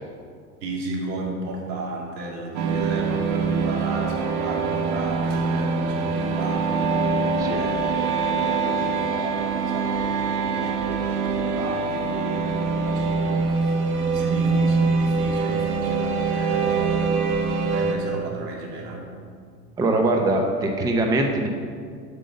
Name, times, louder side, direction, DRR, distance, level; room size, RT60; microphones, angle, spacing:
voice 1, 0.6-13.7 14.1-19.1, right 2 dB, 80° right, -1 dB, 2.5 m, -35 dB
sound 1, 2.5-17.9, right 4 dB, 65° right, 1.2 m, -24 dB
voice 2, 19.8-21.5, right 2 dB, 10° right, 2 dB, 0.5 m, -22 dB
7.7 x 5.4 x 6.6 m, 2.1 s
supercardioid pair, 130°, 48 cm